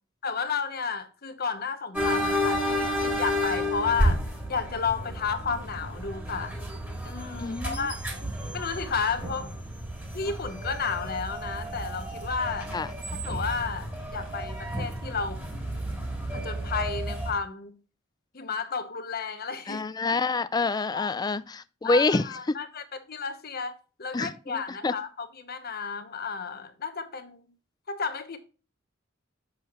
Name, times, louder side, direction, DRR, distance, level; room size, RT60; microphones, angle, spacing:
voice 1, 0.2-4.2 4.5-6.6 7.0-8.0 8.5-9.5 10.1-12.7 13.2-15.4 16.3-17.7 18.3-20.2 20.9-21.1 21.8-27.5 27.9-28.4, left 5 dB, 50° left, 1.0 m, -32 dB
sound 1, 1.9-17.3, equal, 10° right, 2.2 m, -31 dB
voice 2, 7.4-7.8 12.7-12.9 19.7-22.6 24.1-24.9, left 3 dB, 20° left, 0.4 m, -27 dB
7.6 x 6.4 x 3.0 m
head